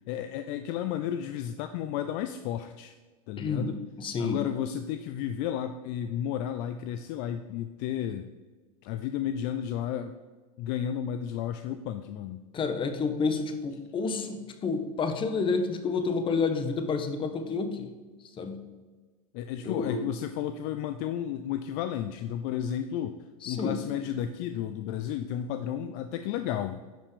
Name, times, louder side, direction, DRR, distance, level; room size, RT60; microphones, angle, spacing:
voice 1, 0.1-2.9 3.3-3.7 4.2-8.2 8.8-10.2 10.6-12.4 19.3-23.2 23.5-26.8, left 10 dB, 50° left, 9 dB, 0.5 m, -32 dB
voice 2, 3.4-4.4 12.5-17.9 18.4-18.6 19.6-20.0 23.4-23.8, left 4 dB, 30° left, 8 dB, 1.2 m, -29 dB
10.5 x 5.5 x 5.1 m, 1.3 s
hypercardioid pair, 105°, 18 cm